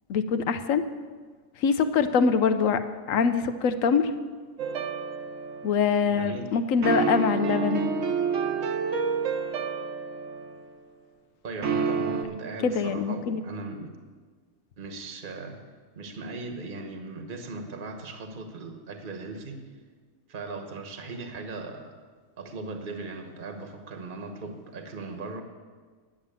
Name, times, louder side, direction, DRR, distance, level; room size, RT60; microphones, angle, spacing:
voice 1, 0.1-0.8 1.6-2.8 3.1-4.1 5.6-7.9 12.6-13.4, left 6 dB, 70° left, 9 dB, 1.0 m, -24 dB
sound 1, 4.6-6.0 6.8-10.8 11.6-12.2, right 5 dB, 65° right, 1.2 m, -29 dB
voice 2, 6.0-6.5 11.4-13.9 14.8-15.6 16.0-19.6 20.3-21.9 22.4-25.4, right 3 dB, 40° right, 5 dB, 1.2 m, -38 dB
10.0 x 7.4 x 8.8 m, 1.5 s
omnidirectional pair, 1.5 m